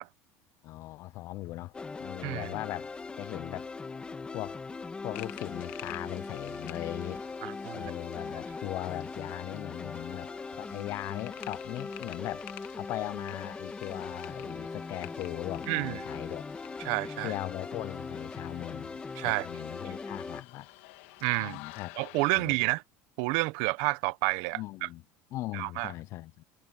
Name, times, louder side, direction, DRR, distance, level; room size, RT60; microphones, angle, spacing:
voice 1, 0.6-1.7 2.0-2.9 3.2-3.7 4.3-4.6 5.0-7.2 7.7-10.3 10.6-12.5 12.8-16.5 17.2-20.7 21.4-21.9 22.3-22.6 24.5-25.0 25.3-26.4, left 17 dB, 50° left, 0.5 m, -39 dB
sound 1, 1.7-20.4, left 4 dB, 15° left, 1.5 m, -40 dB
sound 2, 5.1-22.3, left 20 dB, 85° left, 1.8 m, -50 dB
sound 3, 5.5-10.7, right 8 dB, 35° right, 7.7 m, -65 dB
voice 2, 7.4-7.9 15.7-16.0 16.8-17.3 19.2-19.5 21.2-21.6 22.0-22.8 23.2-24.9 25.5-25.9, right 23 dB, 75° right, 0.9 m, -30 dB
cardioid pair, 140°, 6 cm